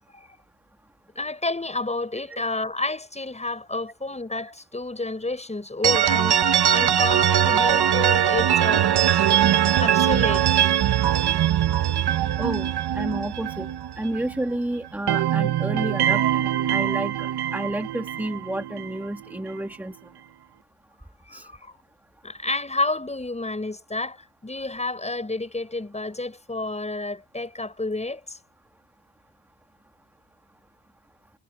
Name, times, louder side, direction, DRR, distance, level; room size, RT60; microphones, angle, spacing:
voice 1, 1.2-8.9 9.2-9.3 9.8-10.6 10.9-11.4 21.3-21.8 22.2-24.2 24.4-28.4, left 2 dB, 15° left, 8.0 m, -30 dB
sound 1, 5.8-14.6 14.8-19.0, right 10 dB, 55° right, 1.3 m, -21 dB
voice 2, 12.4-12.7 12.9-13.7 14.0-20.0 21.3-21.5, right 1 dB, 5° right, 2.1 m, -30 dB
cardioid pair, 105°, 46 cm